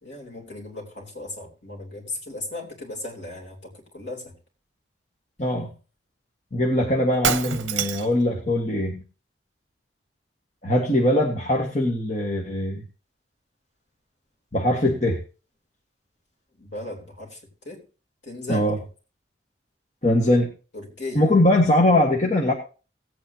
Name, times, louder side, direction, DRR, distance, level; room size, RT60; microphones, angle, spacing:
voice 1, 0.0-4.3 16.6-17.4 17.6-17.8 18.2-18.7 20.7-21.3, left 1 dB, 65° left, -1 dB, 3.6 m, -36 dB
voice 2, 5.4-5.7 6.5-9.0 10.6-12.8 14.5-15.2 18.5-18.8 20.0-20.5 21.1-22.5, left 1 dB, 35° left, -1 dB, 1.5 m, -21 dB
Shatter, 7.1-8.2, right 8 dB, 70° right, 0.7 m, -26 dB
18.0 x 8.7 x 2.8 m, 0.35 s
head